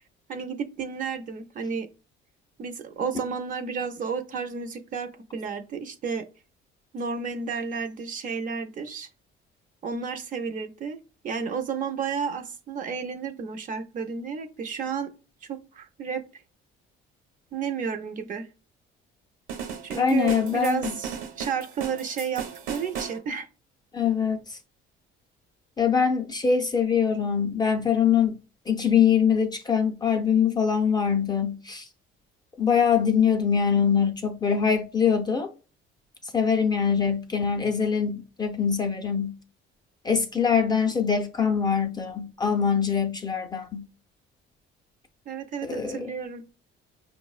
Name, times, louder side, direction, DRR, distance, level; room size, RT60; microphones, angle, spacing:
voice 1, 0.3-1.9 2.6-6.2 6.9-9.1 9.8-11.0 11.2-15.1 15.5-16.4 17.5-18.5 19.8-23.5 45.3-46.4, right 6 dB, 40° right, 0.4 m, -32 dB
sound 1, 19.5-23.2, right 7 dB, 90° right, 0.9 m, -36 dB
voice 2, 20.0-21.0 23.9-24.6 25.8-28.4 28.7-31.9 32.6-35.5 36.3-39.4 40.0-43.9 45.6-46.1, left 7 dB, 20° left, 0.4 m, -23 dB
5.2 x 2.0 x 2.3 m
cardioid pair, 150°, 21 cm